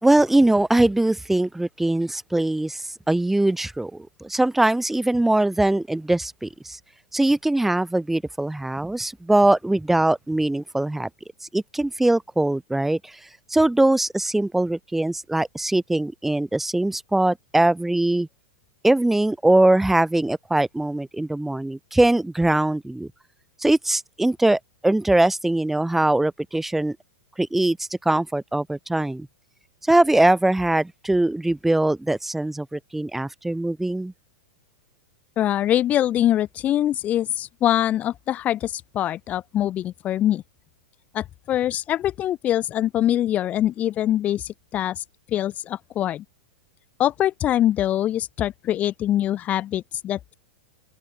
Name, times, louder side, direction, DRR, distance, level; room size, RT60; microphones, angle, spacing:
voice 1, 0.0-6.8 7.1-11.1 11.5-13.1 13.5-18.3 18.8-23.1 23.6-27.0 27.4-29.3 29.9-34.1, right 1 dB, 5° right, 3.2 m, -21 dB
voice 2, 35.4-40.4 41.1-45.0 45.3-46.2 47.0-50.2, left 12 dB, 30° left, 3.1 m, -23 dB
open air
hypercardioid pair, 115°, 5 cm